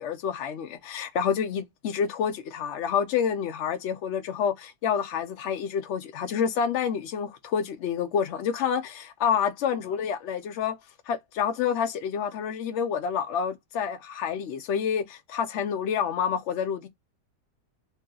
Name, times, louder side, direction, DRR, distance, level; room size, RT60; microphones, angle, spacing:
voice 1, 0.0-10.8 11.1-16.9, left 7 dB, 75° left, 0.6 m, -28 dB
3.0 x 2.8 x 3.8 m
omnidirectional pair, 1.8 m